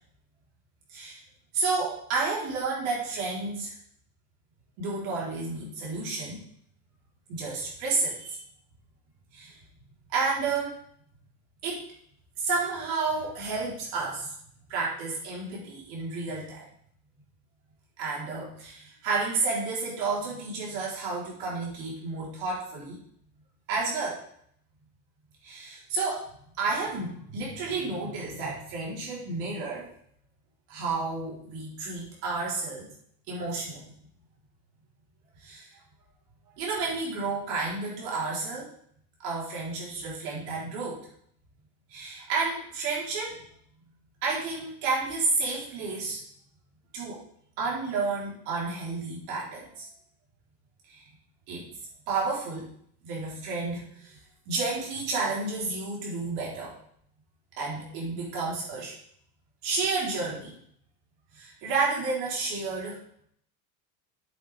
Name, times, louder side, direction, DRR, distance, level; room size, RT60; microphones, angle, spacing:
voice 1, 0.9-1.2 1.5-3.7 4.8-6.4 7.3-8.4 9.3-9.5 10.1-10.7 11.6-11.8 12.4-14.3 14.7-16.7 18.0-23.0 23.7-24.2 25.4-26.3 26.6-29.9 30.7-32.9 33.3-33.8 35.4-35.7 36.6-38.7 39.2-41.0 41.9-43.4 44.2-46.2 46.9-47.2 47.6-49.9 50.9-51.0 51.5-51.7 52.1-52.7 53.0-54.2 54.5-56.8 57.6-59.0 59.6-60.6 61.3-63.0, right 4 dB, 75° right, -4 dB, 4.3 m, -31 dB
8.5 x 7.8 x 3.7 m, 0.65 s
supercardioid pair, 95°, 46 cm